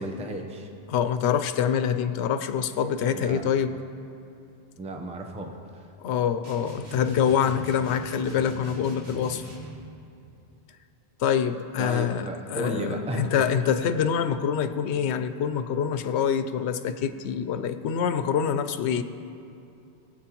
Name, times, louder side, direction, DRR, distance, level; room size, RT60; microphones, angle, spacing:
voice 1, 0.0-0.7 3.1-3.4 4.8-5.9 11.8-13.3, right 1 dB, 5° right, 3 dB, 0.6 m, -34 dB
voice 2, 0.9-3.8 6.0-9.4 11.2-19.0, left 8 dB, 85° left, 10 dB, 0.9 m, -25 dB
sound 1, 6.4-9.8, equal, 75° right, 2.0 m, -41 dB
19.5 x 7.9 x 3.0 m, 2.8 s
omnidirectional pair, 1.1 m